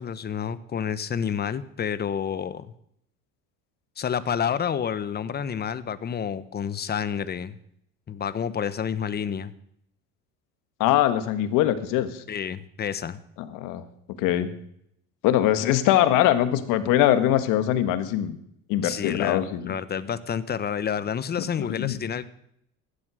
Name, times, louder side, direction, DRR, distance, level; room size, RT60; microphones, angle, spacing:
voice 1, 0.0-2.7 4.0-7.6 8.1-9.5 12.3-13.2 18.8-22.3, left 8 dB, 30° left, 15 dB, 1.0 m, -29 dB
voice 2, 10.8-12.2 13.4-13.8 14.2-14.5 15.2-18.4 18.7-19.7 21.8-22.0, left 12 dB, 75° left, 11 dB, 1.7 m, -22 dB
15.5 x 11.5 x 6.4 m, 0.72 s
cardioid pair, 115°, 32 cm